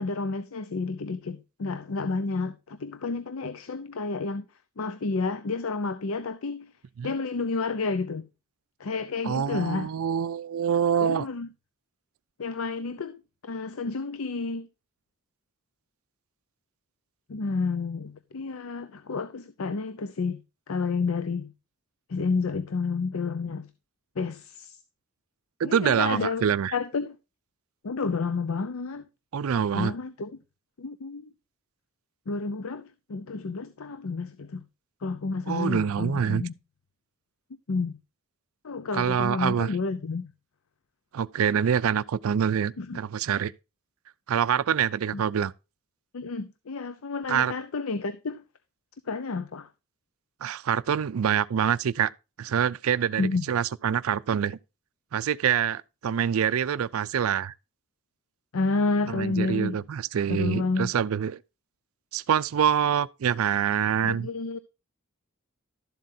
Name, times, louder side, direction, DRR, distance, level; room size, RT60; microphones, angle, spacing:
voice 1, 0.0-4.5 4.8-6.7 7.0-8.3 8.8-9.9 11.0-11.5 12.4-14.7 17.3-21.5 22.1-23.7 24.2-24.8 25.6-27.2 27.8-29.1 29.7-30.4 30.8-31.3 32.3-34.6 35.0-36.5 37.7-38.0 38.6-40.3 42.8-43.0 45.1-45.2 46.1-48.4 49.1-49.7 53.2-53.5 58.5-59.8 60.3-60.9 64.0-64.6, left 4 dB, 70° left, 0.6 m, -30 dB
voice 2, 9.2-11.3 25.6-26.8 29.3-29.9 35.5-36.4 38.9-39.7 41.1-43.5 44.3-45.5 47.3-47.5 50.4-52.1 52.4-54.6 55.1-57.5 59.1-61.4 62.1-64.3, right 8 dB, 75° right, 0.4 m, -25 dB
12.0 x 7.5 x 2.7 m
head